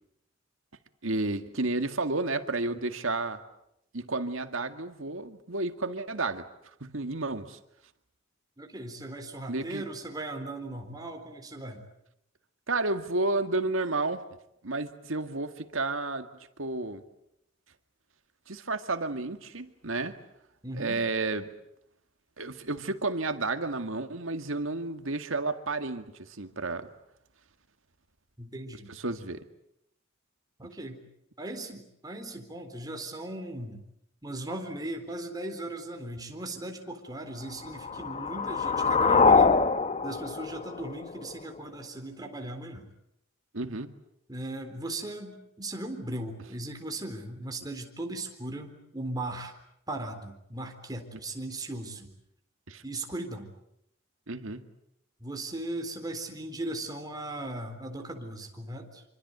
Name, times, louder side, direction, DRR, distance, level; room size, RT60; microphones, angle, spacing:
voice 1, 1.0-3.4 3.9-6.5 6.8-7.6 9.5-9.9 12.7-14.2 14.6-16.3 16.6-17.0 18.5-20.2 20.8-21.5 22.4-26.9 28.9-29.5 43.5-44.0 52.7-52.8 54.3-54.6, right 3 dB, 75° right, 8 dB, 2.0 m, -31 dB
voice 2, 8.6-11.9 20.6-21.0 28.4-28.9 30.6-31.0 31.4-33.8 34.2-39.7 40.0-42.9 44.3-49.6 49.9-52.1 52.8-53.5 55.2-59.0, right 1 dB, 20° right, 4 dB, 3.9 m, -38 dB
sound 1, 37.6-41.6, left 4 dB, 30° left, 1.0 m, -24 dB
26.0 x 25.5 x 8.1 m, 0.78 s
head